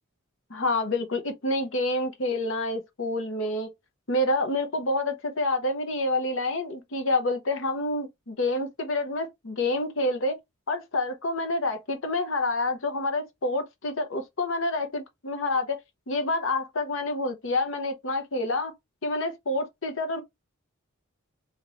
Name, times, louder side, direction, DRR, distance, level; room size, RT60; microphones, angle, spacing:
voice 1, 0.5-3.7 4.1-10.4 10.7-15.8 16.1-18.7 19.0-20.2, left 2 dB, 70° left, 0.8 m, -28 dB
2.9 x 2.7 x 2.9 m
head